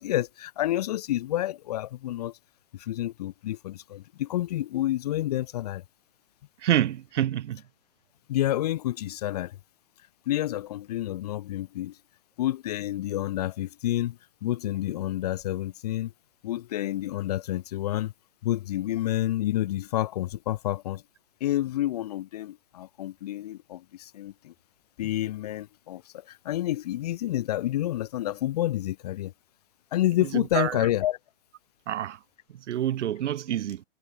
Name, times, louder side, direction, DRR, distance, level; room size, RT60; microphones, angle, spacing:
voice 1, 0.0-2.4 2.7-5.8 8.3-9.6 10.3-12.0 12.4-16.1 16.4-18.1 18.4-21.0 21.4-24.5 25.0-29.3 29.9-31.2, left 14 dB, 30° left, 0.6 m, -29 dB
voice 2, 6.6-7.6 30.5-30.8 31.9-32.2 32.7-33.8, right 11 dB, 65° right, 0.6 m, -27 dB
hypercardioid pair, 140°, 38 cm